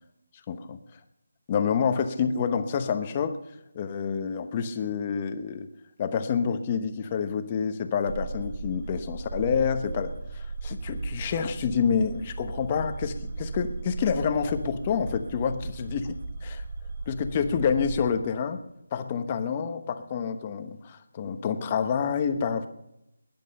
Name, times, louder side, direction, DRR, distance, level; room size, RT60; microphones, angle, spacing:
voice 1, 0.5-0.8 1.5-3.4 3.7-5.7 6.0-16.6 17.1-18.6 18.9-22.7, left 6 dB, 20° left, 8 dB, 1.0 m, -28 dB
sound 1, 8.1-18.1, right 3 dB, 40° right, 1.6 m, -36 dB
19.5 x 11.0 x 5.4 m, 0.84 s
figure-of-eight pair, 175°, 0 cm